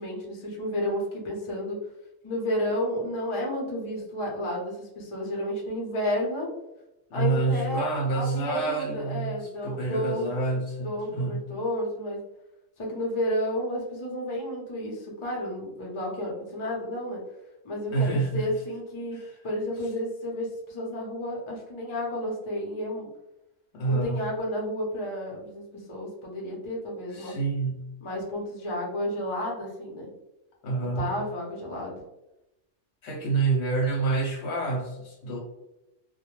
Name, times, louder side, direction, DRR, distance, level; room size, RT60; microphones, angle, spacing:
voice 1, 0.0-1.8 2.2-6.5 7.1-7.9 8.1-10.3 10.8-12.2 12.8-17.2 17.6-23.1 23.9-27.4 28.0-30.1 31.0-32.0, left 1 dB, 35° left, -2 dB, 0.5 m, -31 dB
voice 2, 7.1-11.5 17.9-18.5 19.1-19.4 23.7-24.2 27.1-27.9 30.6-31.2 33.0-35.4, right 3 dB, 65° left, 0 dB, 0.8 m, -28 dB
2.2 x 2.1 x 2.9 m, 0.90 s
omnidirectional pair, 1.3 m